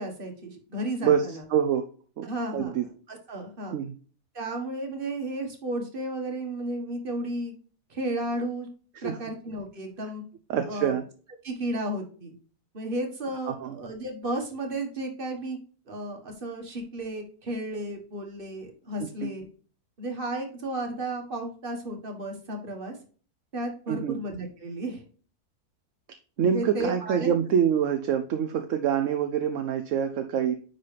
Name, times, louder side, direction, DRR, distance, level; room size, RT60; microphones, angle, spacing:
voice 1, 0.0-1.4 2.2-3.7 4.3-7.5 7.9-8.7 9.0-10.2 10.7-11.0 11.4-12.3 12.7-15.6 15.9-19.5 20.0-22.9 23.5-25.0 26.4-27.3, right 1 dB, 35° right, 3 dB, 1.6 m, -33 dB
voice 2, 1.0-1.9 2.2-2.8 3.7-3.9 8.9-9.2 10.5-11.0 13.5-13.7 19.2-19.3 23.9-24.2 26.4-30.5, right 8 dB, 65° right, 8 dB, 0.9 m, -26 dB
9.6 x 3.9 x 3.3 m, 0.41 s
omnidirectional pair, 1.6 m